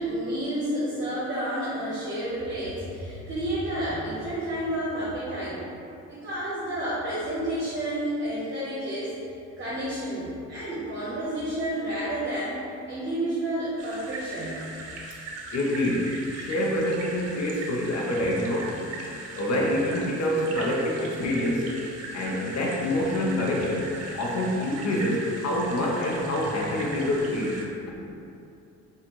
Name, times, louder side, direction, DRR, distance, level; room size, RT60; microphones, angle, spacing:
voice 1, 0.0-5.6 6.1-9.1 9.6-12.6 12.9-14.6, right 1 dB, 40° right, -8 dB, 0.8 m, -30 dB
sound 1, 13.8-27.6, right 2 dB, 55° right, 0.6 m, -39 dB
voice 2, 15.5-18.7 19.3-21.7 22.1-23.9 24.1-27.5, left 1 dB, 55° left, -2 dB, 0.8 m, -26 dB
4.1 x 2.5 x 3.0 m, 2.6 s
cardioid pair, 90°, 31 cm